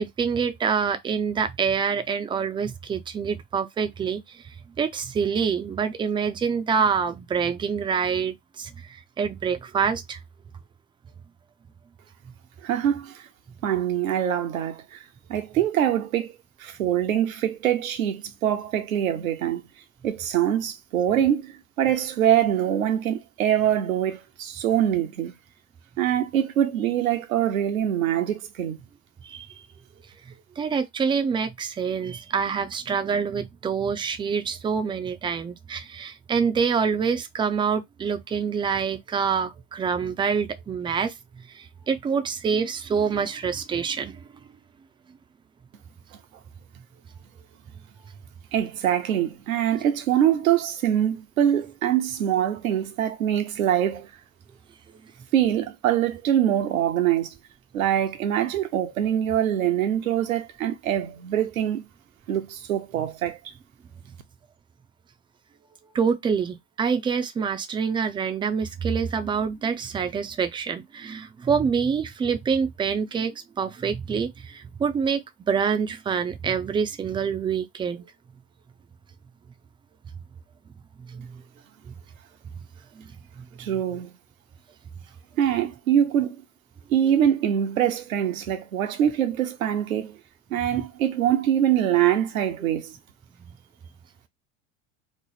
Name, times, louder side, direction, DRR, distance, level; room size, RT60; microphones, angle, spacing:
voice 1, 0.0-4.2 4.8-8.7 9.2-10.2 29.2-29.5 30.6-41.1 41.5-44.2 65.9-78.1 81.0-81.4 83.4-83.5 90.6-90.8, right 6 dB, 15° right, 0.4 m, -26 dB
voice 2, 12.6-13.2 13.6-15.0 15.3-16.3 16.6-19.6 20.0-25.3 26.0-28.8 48.5-54.1 55.3-57.3 57.7-61.8 62.3-63.4 83.6-84.1 85.4-86.4 86.9-90.2 90.5-92.9, right 10 dB, 90° right, 0.8 m, -24 dB
3.2 x 2.0 x 3.9 m
hypercardioid pair, 100°, 40 cm